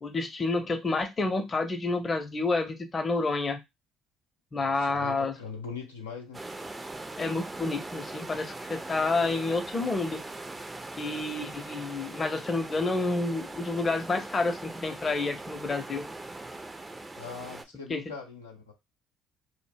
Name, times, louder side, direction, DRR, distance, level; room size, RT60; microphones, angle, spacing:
voice 1, 0.0-3.6 4.5-5.3 7.2-10.2 11.0-16.0 17.9-18.0, left 3 dB, 35° left, 0.6 m, -29 dB
voice 2, 4.5-6.4 17.2-18.7, left 5 dB, 90° left, 0.5 m, -41 dB
sound 1, 6.3-17.6, right 2 dB, 20° right, 0.5 m, -41 dB
2.1 x 2.0 x 3.3 m
hypercardioid pair, 55°, 0 cm